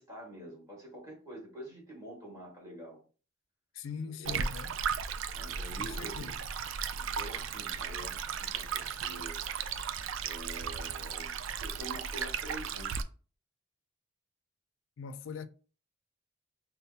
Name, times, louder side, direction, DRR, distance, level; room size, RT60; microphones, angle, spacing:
voice 1, 0.0-3.0 4.2-4.4 5.3-6.4 6.9-9.4 10.2-12.9, equal, 15° right, 1.7 m, -47 dB
voice 2, 3.7-4.7 5.8-6.4 15.0-15.5, left 6 dB, 80° left, 0.3 m, -41 dB
Stream, 4.2-13.0, right 7 dB, 85° right, 0.3 m, -36 dB
5.3 x 2.0 x 2.7 m
head